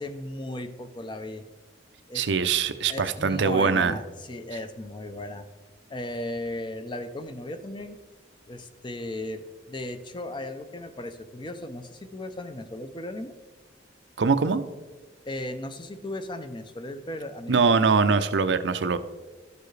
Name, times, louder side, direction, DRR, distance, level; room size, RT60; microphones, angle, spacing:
voice 1, 0.0-1.5 2.1-2.3 2.9-5.4 5.9-8.0 8.5-13.3 15.2-17.6, left 1 dB, 25° left, 9 dB, 0.5 m, -36 dB
voice 2, 2.1-3.9 14.2-14.6 17.5-19.0, right 5 dB, 75° right, 11 dB, 0.5 m, -22 dB
12.5 x 6.8 x 3.2 m, 1.3 s
head